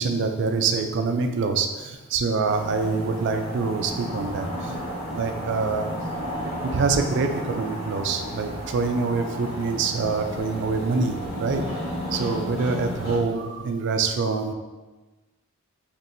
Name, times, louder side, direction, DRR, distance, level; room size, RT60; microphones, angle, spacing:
voice 1, 0.0-4.8 5.1-5.9 6.4-11.6 12.1-14.5, right 4 dB, 55° right, 6 dB, 0.3 m, -25 dB
sound 1, 2.4-13.2, equal, 45° left, 1.1 m, -33 dB
4.3 x 3.0 x 2.6 m, 1.2 s
head